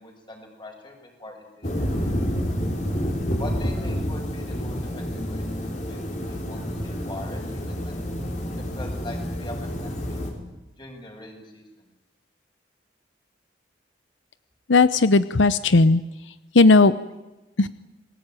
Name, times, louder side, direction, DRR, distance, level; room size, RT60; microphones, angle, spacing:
voice 1, 0.0-2.1 3.4-8.0 8.6-10.3 10.8-11.9, left 1 dB, 25° left, 3 dB, 6.4 m, -42 dB
sound 1, 1.6-10.3, equal, 40° left, 5.3 m, -29 dB
voice 2, 14.7-16.0 16.5-16.9 17.6-17.7, left 3 dB, 80° left, 14 dB, 0.8 m, -16 dB
29.0 x 20.5 x 9.1 m, 1.1 s
head